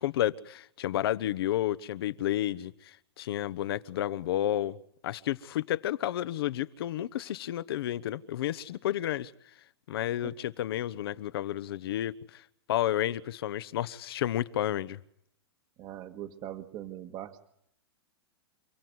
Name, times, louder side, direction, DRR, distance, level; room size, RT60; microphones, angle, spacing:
voice 1, 0.0-4.8 5.0-9.3 9.9-12.4 12.7-15.0, left 12 dB, 65° left, 1.1 m, -31 dB
voice 2, 15.8-17.4, right 11 dB, 30° right, 1.7 m, -41 dB
28.5 x 17.5 x 9.6 m
hypercardioid pair, 150°, 14 cm